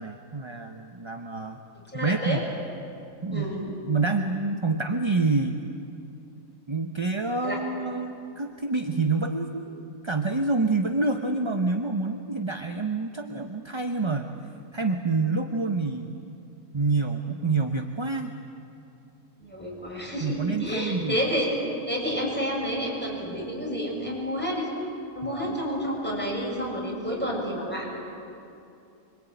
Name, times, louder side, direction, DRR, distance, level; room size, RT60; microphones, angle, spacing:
voice 1, 0.0-1.6 1.9-2.4 3.2-5.6 6.7-14.3 14.7-16.1 16.7-18.3 20.2-21.3 25.2-25.6, right 3 dB, 25° right, 5 dB, 0.8 m, -27 dB
voice 2, 1.9-2.4 3.3-3.7 7.4-7.6 19.4-21.5 21.9-24.7 25.1-28.0, equal, 5° left, -3 dB, 7.2 m, -30 dB
25.5 x 24.0 x 9.3 m, 2.7 s
omnidirectional pair, 1.6 m